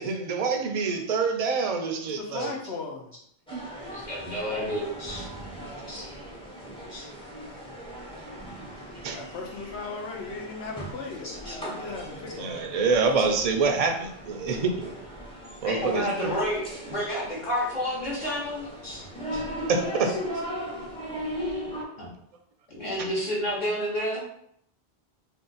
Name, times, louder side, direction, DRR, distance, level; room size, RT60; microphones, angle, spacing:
voice 1, 0.0-2.5 3.5-3.6 9.0-9.2 12.4-14.7 15.6-16.3 19.7-20.1 23.0-23.1, right 4 dB, 55° right, 4 dB, 0.4 m, -26 dB
voice 2, 2.0-3.1 6.9-8.1 8.5-8.6 8.9-12.7 20.7-20.8 21.9-22.0, left 4 dB, 85° left, 1 dB, 0.9 m, -39 dB
sound 1, 3.5-21.8, equal, 5° left, 0.6 m, -38 dB
voice 3, 4.1-5.3 5.9-6.0 6.9-7.1 11.2-11.6 15.6-19.0 19.3-19.4 21.3-22.1 22.7-24.2, equal, 50° left, -6 dB, 0.9 m, -30 dB
2.6 x 2.5 x 3.8 m, 0.70 s
omnidirectional pair, 1.1 m